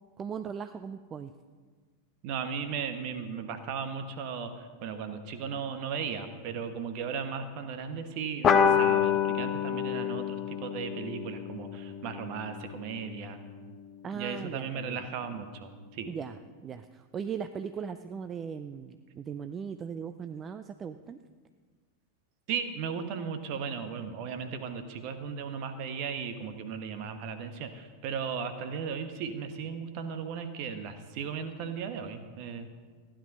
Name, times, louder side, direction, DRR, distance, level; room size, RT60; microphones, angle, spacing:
voice 1, 0.2-1.3 14.0-15.0 16.0-21.2, right 7 dB, 25° right, 10 dB, 0.5 m, -38 dB
voice 2, 2.2-4.5 4.8-13.4 14.1-16.1 22.5-32.7, right 6 dB, 45° right, 8 dB, 1.3 m, -36 dB
sound 1, 8.4-13.4, left 8 dB, 25° left, 1.0 m, -28 dB
15.5 x 10.0 x 5.4 m, 1.5 s
figure-of-eight pair, 90°, 0 cm